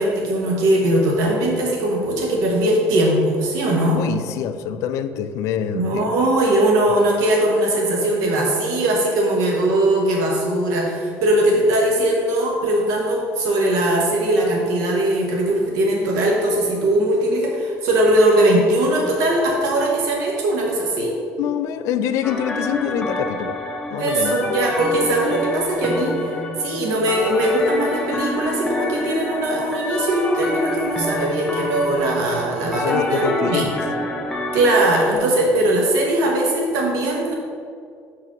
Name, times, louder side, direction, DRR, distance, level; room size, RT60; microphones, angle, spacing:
voice 1, 0.0-4.0 5.7-21.2 24.0-33.7 34.5-37.3, right 1 dB, 85° right, -1 dB, 1.1 m, -20 dB
voice 2, 4.0-6.1 21.4-23.6 23.9-24.4 32.7-33.8, left 9 dB, 65° left, 11 dB, 0.4 m, -25 dB
sound 1, 22.2-35.2, left 1 dB, 10° left, 0.8 m, -27 dB
5.9 x 4.7 x 6.0 m, 2.3 s
cardioid pair, 165°, 6 cm